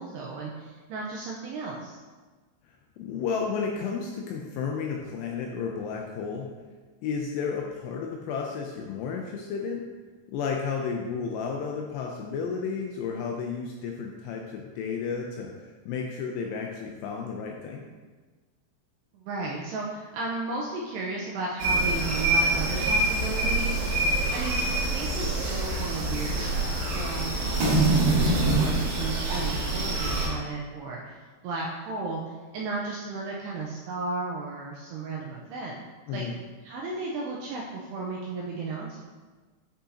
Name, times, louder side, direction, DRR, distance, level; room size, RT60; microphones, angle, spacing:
voice 1, 0.0-2.0 19.1-23.8 24.3-31.2 31.4-35.8 36.1-36.2 36.6-39.0, right 3 dB, 85° right, -3 dB, 2.4 m, -34 dB
voice 2, 3.0-6.5 7.0-9.8 10.3-17.9 36.1-36.3, left 5 dB, 80° left, 1 dB, 2.5 m, -32 dB
sound 1, 21.6-30.3, right 2 dB, 65° right, 2.8 m, -25 dB
8.8 x 5.5 x 2.8 m, 1.3 s
omnidirectional pair, 5.4 m